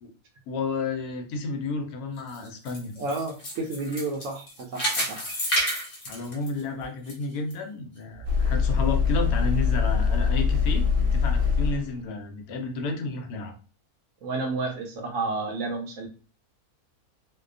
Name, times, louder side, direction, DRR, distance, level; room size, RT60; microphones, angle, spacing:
voice 1, 0.5-2.9 6.1-13.5, left 3 dB, 90° left, 4 dB, 1.1 m, -31 dB
sound 1, 2.2-7.1 7.5-7.6 8.2-8.3, equal, 45° left, 0.9 m, -30 dB
voice 2, 3.0-5.2 14.2-16.1, right 3 dB, 70° right, 3 dB, 0.8 m, -31 dB
sound 2, 8.3-12.0, left 5 dB, 85° right, 1.1 m, -23 dB
2.6 x 2.1 x 2.4 m, 0.37 s
omnidirectional pair, 1.6 m